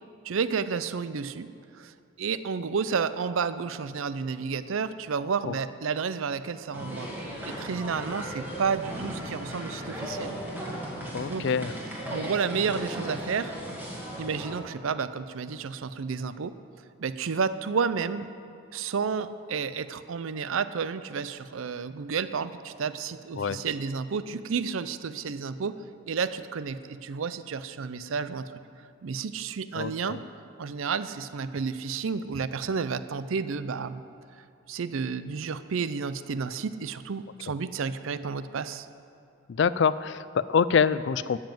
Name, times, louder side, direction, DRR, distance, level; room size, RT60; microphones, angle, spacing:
voice 1, 0.2-1.5 1.8-7.1 7.5-10.4 11.3-11.5 12.1-13.5 14.2-16.5 17.0-18.3 18.7-25.8 26.1-28.6 29.0-30.2 30.6-34.0 34.7-38.9, right 5 dB, 80° right, 13 dB, 0.5 m, -31 dB
sound 1, 6.7-14.6, equal, 10° right, 1.9 m, -36 dB
voice 2, 11.1-11.7 23.4-23.6 29.8-30.2 39.6-41.4, left 6 dB, 60° left, 16 dB, 0.3 m, -25 dB
12.5 x 7.2 x 7.6 m, 2.4 s
head